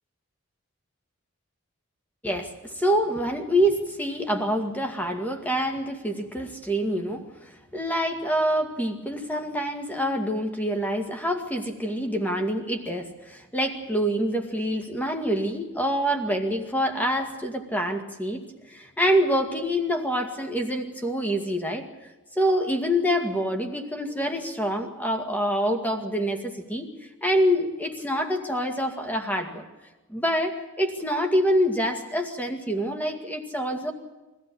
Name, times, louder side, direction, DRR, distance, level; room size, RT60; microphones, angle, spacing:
voice 1, 2.2-18.4 18.7-26.9 27.2-29.6 30.1-33.9, equal, 10° left, 4 dB, 2.1 m, -26 dB
24.0 x 15.5 x 8.8 m, 1.1 s
head